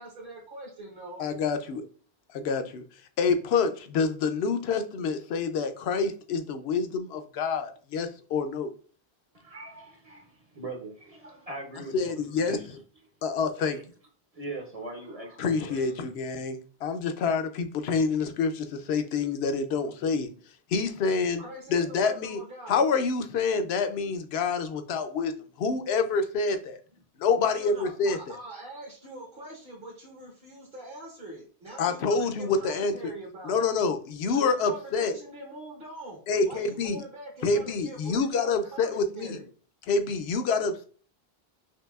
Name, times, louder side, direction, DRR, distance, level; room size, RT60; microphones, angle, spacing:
voice 1, 0.0-1.2 21.4-22.8 27.4-33.7 34.2-39.5, right 1 dB, 60° right, 1.2 m, -43 dB
voice 2, 1.2-1.9 2.3-2.8 3.2-8.7 11.9-12.6 13.2-13.8 15.4-20.3 20.7-21.4 21.7-22.4 22.7-25.3 25.6-26.8 27.2-28.4 31.8-33.1 33.4-35.1 36.3-37.0 37.4-39.4 39.9-40.9, left 4 dB, 80° left, 0.8 m, -27 dB
voice 3, 9.3-12.8 13.6-13.8 14.3-15.9, right 2 dB, 40° right, 0.7 m, -41 dB
5.8 x 2.6 x 2.3 m
omnidirectional pair, 1.0 m